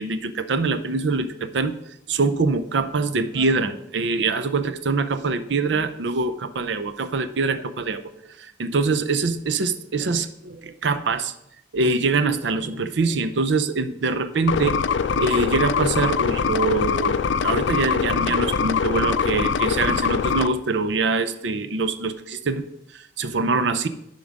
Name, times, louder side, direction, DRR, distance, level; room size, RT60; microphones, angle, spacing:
voice 1, 0.0-1.7 2.1-11.3 11.7-14.7 15.1-17.2 17.4-22.6 22.9-23.9, right 3 dB, 70° right, 11 dB, 0.5 m, -24 dB
sound 1, 14.5-20.5, left 6 dB, 75° left, 0.4 m, -23 dB
10.5 x 3.8 x 5.2 m, 0.79 s
head